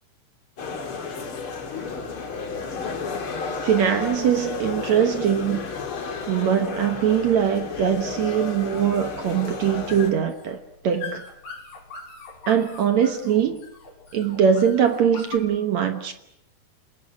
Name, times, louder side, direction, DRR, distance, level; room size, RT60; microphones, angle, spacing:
sound 1, 0.6-10.1, left 4 dB, 40° left, 2.7 m, -32 dB
voice 1, 3.6-5.6 6.3-11.3 12.5-13.6 14.1-16.1, right 8 dB, 65° right, 8 dB, 1.8 m, -22 dB
sound 2, 5.1-15.4, left 5 dB, 85° left, 7.9 m, -43 dB
27.5 x 20.0 x 8.4 m, 0.79 s
omnidirectional pair, 4.7 m